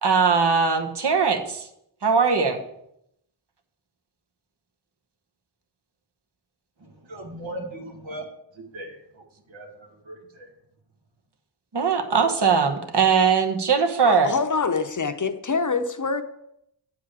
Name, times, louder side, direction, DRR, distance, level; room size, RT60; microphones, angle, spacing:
voice 1, 0.0-1.7 2.0-2.6 11.7-14.3, right 5 dB, 60° right, 5 dB, 1.3 m, -20 dB
voice 2, 7.0-8.2 8.7-9.2 9.5-9.7 10.0-10.5, right 1 dB, 75° right, 0 dB, 2.2 m, -37 dB
voice 3, 14.0-16.2, left 4 dB, 40° left, 8 dB, 0.8 m, -25 dB
8.8 x 4.8 x 7.6 m, 0.77 s
wide cardioid pair, 75°, 45 cm